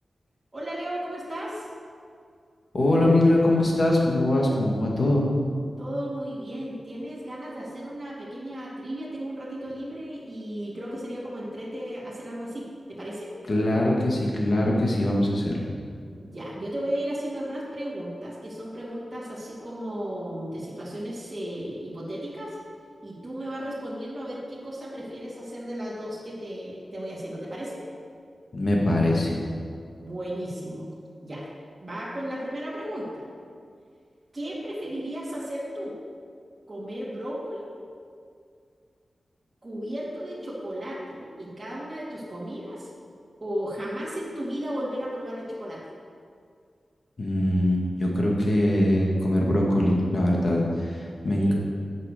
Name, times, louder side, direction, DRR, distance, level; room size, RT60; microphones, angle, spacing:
voice 1, 0.5-1.7 5.8-13.3 16.2-22.6 23.0-27.8 30.0-30.9 31.2-31.4 31.8-33.3 34.3-35.9 36.7-37.7 39.6-42.9 43.4-45.8 51.4-51.5, equal, 25° right, -8 dB, 2.9 m, -34 dB
voice 2, 2.7-5.3 13.5-15.7 28.5-29.4 47.2-51.5, left 1 dB, 50° left, -2 dB, 2.1 m, -22 dB
8.7 x 6.7 x 6.8 m, 2.2 s
wide cardioid pair, 80°, 0 cm